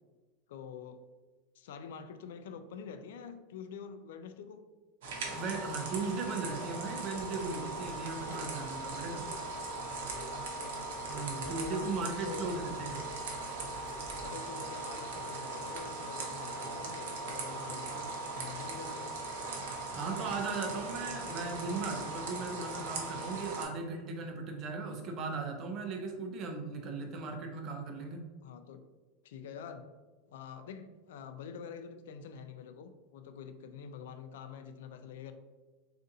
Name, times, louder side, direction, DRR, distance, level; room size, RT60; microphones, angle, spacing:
voice 1, 0.5-1.0 1.6-4.6 10.3-10.9 11.4-12.6 14.2-19.2 28.4-28.8 29.2-29.8 30.3-35.3, left 6 dB, 85° left, 8 dB, 0.3 m, -46 dB
sound 1, 5.0-23.6, right 3 dB, 80° right, 0.8 m, -39 dB
voice 2, 5.3-9.3 11.1-13.1 19.9-28.3, right 4 dB, 35° right, 3 dB, 0.5 m, -37 dB
Water tap faucet / Sink (filling or washing) / Drip, 7.1-14.3, left 2 dB, 45° left, 1.0 m, -53 dB
3.8 x 2.5 x 2.7 m, 1.2 s
supercardioid pair, 155°, 0 cm